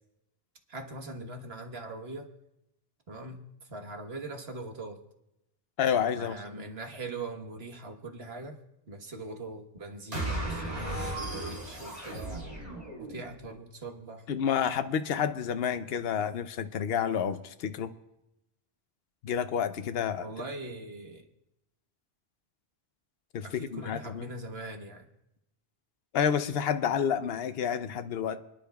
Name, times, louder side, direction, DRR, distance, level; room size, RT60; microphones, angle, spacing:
voice 1, 0.7-2.3 3.1-5.0 6.1-8.6 8.9-12.5 13.0-14.3 20.2-21.3 23.4-25.1, right 2 dB, 80° right, 4 dB, 1.5 m, -41 dB
voice 2, 5.8-6.6 14.3-17.9 19.2-20.3 23.3-24.3 26.1-28.4, left 8 dB, 75° left, 11 dB, 0.9 m, -29 dB
sound 1, 10.1-13.5, right 2 dB, 40° right, 3.2 m, -36 dB
28.5 x 10.5 x 2.3 m, 0.88 s
omnidirectional pair, 1.0 m